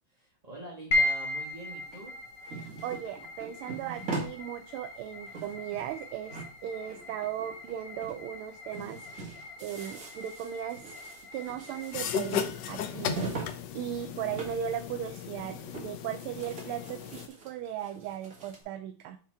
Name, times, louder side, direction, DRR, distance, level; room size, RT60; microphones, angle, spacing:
voice 1, 0.1-2.1, right 2 dB, 25° right, -3 dB, 1.0 m, -44 dB
sound 1, 0.9-15.4, left 2 dB, 50° left, 1.3 m, -38 dB
sound 2, 1.9-4.4 4.8-4.9 5.1-6.0 6.3-7.7 8.0-8.2 8.5-13.6 13.8-14.7 14.9-15.0 15.4-16.1 16.3-18.6, right 3 dB, 40° right, 1.9 m, -41 dB
voice 2, 2.5-11.0 11.3-19.2, right 10 dB, 85° right, 6 dB, 1.5 m, -37 dB
sound 3, 11.9-17.3, left 8 dB, 70° left, 1.1 m, -36 dB
6.0 x 3.8 x 4.3 m, 0.39 s
omnidirectional pair, 2.4 m